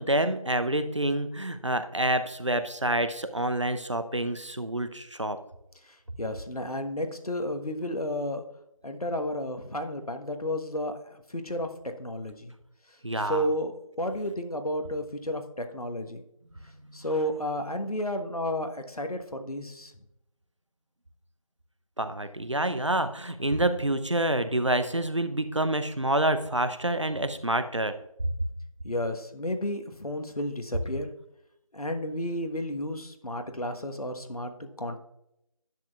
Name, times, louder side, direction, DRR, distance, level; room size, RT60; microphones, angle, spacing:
voice 1, 0.0-5.4 13.0-13.5 17.8-17.9 22.0-27.9, right 1 dB, 55° right, 11 dB, 0.6 m, -27 dB
voice 2, 6.2-8.4 8.8-11.7 12.0-12.5 13.3-13.7 14.0-16.2 16.9-19.9 28.8-31.1 31.7-35.0, left 1 dB, 90° left, 6 dB, 1.2 m, -32 dB
10.5 x 7.5 x 2.4 m, 0.83 s
figure-of-eight pair, 180°, 18 cm